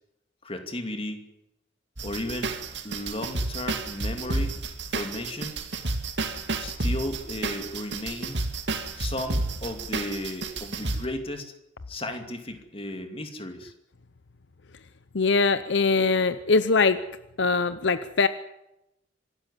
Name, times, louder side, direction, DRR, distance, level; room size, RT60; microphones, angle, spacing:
voice 1, 0.4-1.3 2.0-2.5 2.8-4.6 4.9-5.6 6.6-8.5 8.9-11.5 11.9-13.7, left 1 dB, 30° left, 6 dB, 2.5 m, -34 dB
sound 1, 2.0-11.0, right 2 dB, 65° right, 2.3 m, -30 dB
voice 2, 15.1-17.0 17.4-18.3, left 4 dB, 65° left, 13 dB, 0.8 m, -22 dB
25.5 x 13.0 x 9.9 m, 0.89 s
head